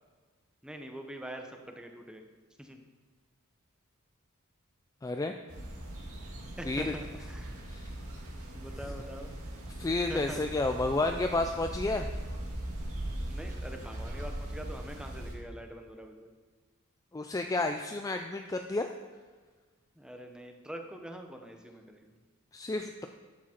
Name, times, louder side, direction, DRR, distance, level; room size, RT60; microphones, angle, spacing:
voice 1, 0.6-2.2 2.6-2.8 6.6-7.6 8.5-9.3 10.1-10.4 13.2-16.3 20.0-22.1, right 1 dB, 5° right, 4 dB, 0.8 m, -44 dB
voice 2, 5.0-5.3 6.6-6.9 7.7-7.9 9.8-12.1 17.1-18.9 22.5-23.1, left 2 dB, 15° left, 6 dB, 0.3 m, -31 dB
sound 1, 5.5-15.3, right 1 dB, 90° right, 2.1 m, -40 dB
11.0 x 7.5 x 4.4 m, 1.4 s
head